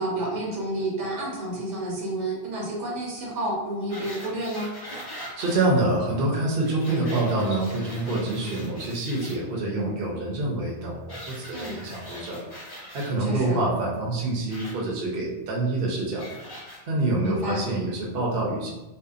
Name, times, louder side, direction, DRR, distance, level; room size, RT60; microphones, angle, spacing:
voice 1, 0.0-4.7 11.5-11.8 13.2-13.6 17.2-17.6, right 1 dB, 80° right, -3 dB, 1.0 m, -30 dB
sound 1, 3.9-5.6 6.6-9.3 11.1-13.1 14.5-14.7 16.2-16.8 17.5-17.6, equal, 30° left, 0.4 m, -41 dB
voice 2, 5.4-12.4 12.9-16.3 16.9-18.7, right 2 dB, 60° right, -3 dB, 0.8 m, -26 dB
2.6 x 2.2 x 2.4 m, 1.0 s
omnidirectional pair, 1.2 m